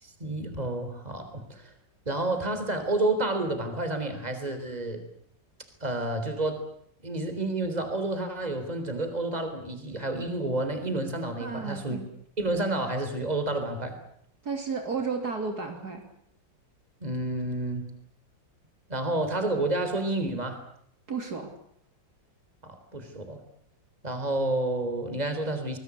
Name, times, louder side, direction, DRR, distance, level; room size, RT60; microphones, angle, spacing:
voice 1, 0.0-1.7 2.1-5.0 5.8-6.6 7.0-12.0 12.4-13.9 17.0-17.9 18.9-20.6 22.6-23.4 24.0-25.8, right 2 dB, 20° right, 8 dB, 3.8 m, -30 dB
voice 2, 11.4-12.1 14.4-16.0 21.1-21.5, right 5 dB, 55° right, 4 dB, 3.5 m, -32 dB
26.0 x 20.5 x 8.3 m, 0.69 s
omnidirectional pair, 2.0 m